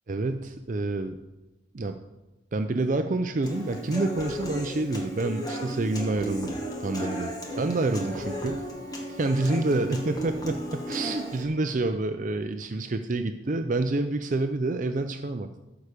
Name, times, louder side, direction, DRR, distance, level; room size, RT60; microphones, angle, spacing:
voice 1, 0.1-1.2 1.7-2.0 2.5-8.6 9.1-15.6, right 2 dB, 45° right, 7 dB, 0.5 m, -28 dB
Human voice / Acoustic guitar, 3.4-11.4, equal, 20° left, 1.6 m, -35 dB
Wind instrument woodwind instrument, 6.9-11.5, right 1 dB, 20° right, 3.6 m, -48 dB
13.0 x 4.9 x 6.6 m, 1.0 s
head